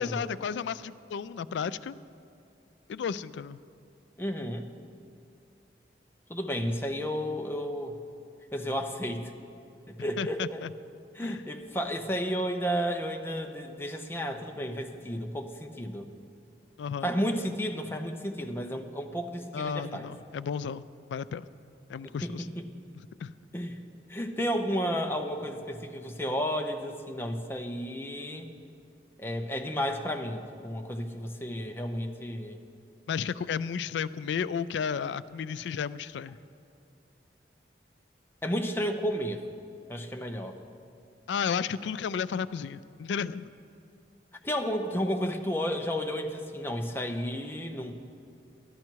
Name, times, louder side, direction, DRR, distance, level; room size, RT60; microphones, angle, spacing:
voice 1, 0.0-1.9 2.9-3.6 10.2-10.7 11.2-11.4 16.8-17.1 19.5-20.8 21.1-21.4 21.9-22.5 23.2-23.3 33.1-36.4 41.3-43.5, left 7 dB, 85° left, 16 dB, 0.3 m, -33 dB
voice 2, 4.2-4.7 6.3-7.9 8.5-9.3 9.9-10.6 11.1-16.1 17.0-20.1 22.2-22.6 23.5-23.8 24.1-28.5 29.2-32.6 38.4-39.4 39.9-40.6 44.4-47.9, equal, 15° left, 4 dB, 0.6 m, -32 dB
12.0 x 12.0 x 4.6 m, 2.6 s
head